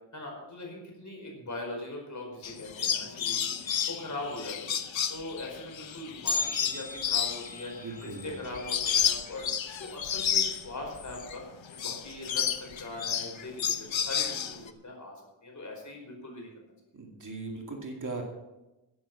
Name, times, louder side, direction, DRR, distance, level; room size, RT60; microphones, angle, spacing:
voice 1, 0.1-4.8 5.1-11.4 11.7-16.5, left 2 dB, 40° left, 0 dB, 4.9 m, -41 dB
sound 1, 2.4-11.4 11.7-14.7, left 8 dB, 90° left, 1.1 m, -31 dB
Bell, 6.3-10.3 10.6-10.7 11.2-11.3 12.1-12.2 13.0-13.2 13.6-13.7, left 3 dB, 60° left, 3.5 m, -38 dB
voice 2, 7.8-8.4 16.9-18.2, right 3 dB, 40° right, 2 dB, 2.4 m, -39 dB
13.0 x 11.0 x 6.1 m, 1.0 s
wide cardioid pair, 150°, 45 cm